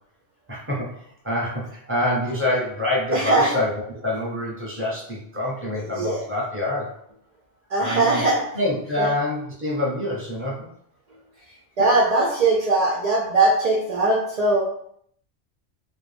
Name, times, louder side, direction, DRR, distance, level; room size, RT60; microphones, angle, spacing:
voice 1, 0.5-6.9 7.8-8.2 8.5-10.6, left 1 dB, 15° right, -4 dB, 0.7 m, -26 dB
voice 2, 3.0-3.5 5.7-6.3 7.7-9.1 11.8-14.6, right 2 dB, 60° right, -3 dB, 0.4 m, -21 dB
2.2 x 2.2 x 3.2 m, 0.66 s
omnidirectional pair, 1.2 m